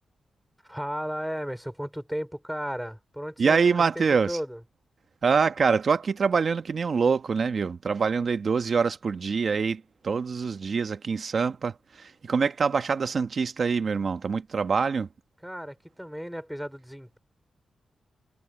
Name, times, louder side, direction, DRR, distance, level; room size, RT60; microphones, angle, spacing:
voice 1, 0.6-4.6 15.4-17.2, equal, ahead, 4.4 m, -34 dB
voice 2, 3.4-4.4 5.2-15.1, right 5 dB, 50° right, 1.4 m, -25 dB
wide cardioid pair, 120°, 0 cm